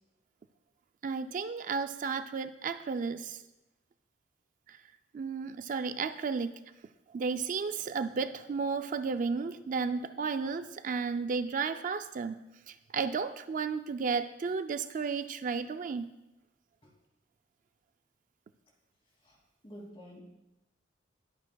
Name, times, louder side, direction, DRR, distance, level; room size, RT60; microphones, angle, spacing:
voice 1, 1.0-3.4 4.7-4.8 5.1-6.6 7.1-12.4 12.7-16.1, right 5 dB, 45° right, 10 dB, 0.3 m, -33 dB
voice 2, 19.6-20.2, equal, 30° left, -1 dB, 2.5 m, -49 dB
20.5 x 8.3 x 2.3 m, 0.96 s
head